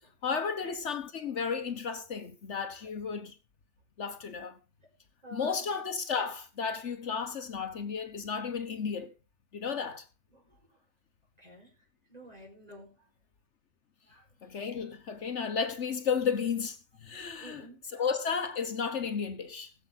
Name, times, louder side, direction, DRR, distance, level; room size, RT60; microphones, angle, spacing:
voice 1, 0.2-3.4 4.0-4.6 5.3-9.1 9.5-10.1 14.4-19.7, left 6 dB, 65° left, 1.3 m, -33 dB
voice 2, 5.2-5.5 10.3-10.6 11.4-11.7 12.1-12.9 14.1-14.2 17.4-17.8, right 1 dB, 30° right, 5.7 m, -49 dB
20.5 x 7.3 x 4.1 m
omnidirectional pair, 1.3 m